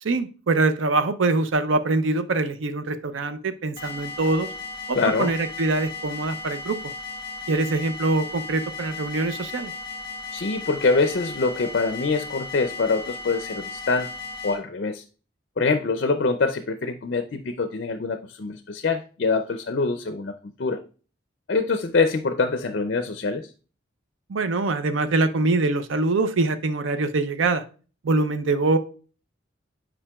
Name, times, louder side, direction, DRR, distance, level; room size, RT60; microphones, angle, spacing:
voice 1, 0.0-4.5 4.9-6.9 7.5-9.7 24.3-27.6 28.0-28.8, right 3 dB, 75° right, 11 dB, 0.5 m, -24 dB
sound 1, 3.8-14.6, left 4 dB, 20° left, 1.7 m, -36 dB
voice 2, 4.9-5.3 10.3-14.1 14.4-15.0 15.6-20.3 20.6-20.8 21.5-23.5, left 4 dB, 55° left, 8 dB, 0.4 m, -24 dB
8.7 x 5.1 x 2.3 m, 0.36 s
head